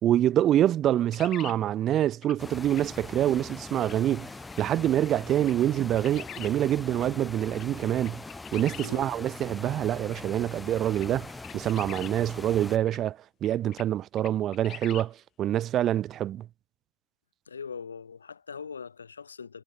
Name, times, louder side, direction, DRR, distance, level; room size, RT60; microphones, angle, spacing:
voice 1, 0.0-4.3 4.6-8.2 8.5-16.5, right 12 dB, 30° right, 0.4 m, -26 dB
sound 1, 1.1-1.6 2.2-2.4 2.7-2.8 3.8-4.0 4.5-4.6 5.1-5.2 5.4-6.5 7.0-7.1 7.5-7.6 8.0-8.9 9.4-9.5 10.1-10.2 10.8-12.1 12.9-13.0 13.4-13.9 14.2-15.1, left 12 dB, 30° left, 5.2 m, -43 dB
sound 2, 2.4-12.8, left 3 dB, 10° left, 7.1 m, -42 dB
voice 2, 17.5-19.6, left 6 dB, 70° left, 5.7 m, -41 dB
figure-of-eight pair, 90°, 0 cm